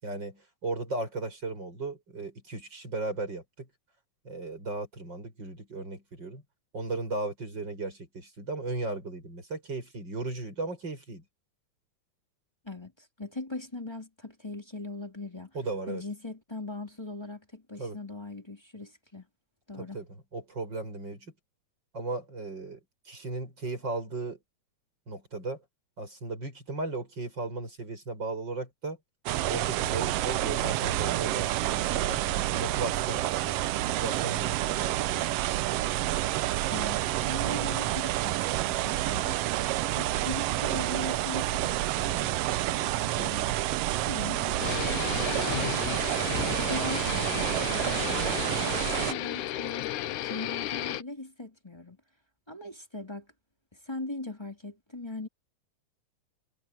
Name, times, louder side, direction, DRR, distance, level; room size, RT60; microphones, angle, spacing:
voice 1, 0.0-3.7 4.2-6.4 6.7-11.2 15.5-16.0 17.8-18.0 19.8-20.1 20.3-21.3 21.9-22.8 23.1-24.4 25.1-25.6 26.0-29.0 29.5-33.6 33.9-35.3, right 3 dB, 35° right, 7.7 m, -36 dB
voice 2, 12.6-15.5 15.9-19.3 19.7-20.0 36.7-39.4 40.0-43.6 44.0-46.0 46.5-49.9 50.2-52.0 52.5-53.3 53.8-55.3, left 2 dB, 10° left, 2.3 m, -40 dB
sound 1, 29.3-49.1, right 15 dB, 80° right, 1.4 m, -29 dB
sound 2, 44.6-51.0, left 13 dB, 85° left, 2.4 m, -33 dB
omnidirectional pair, 3.4 m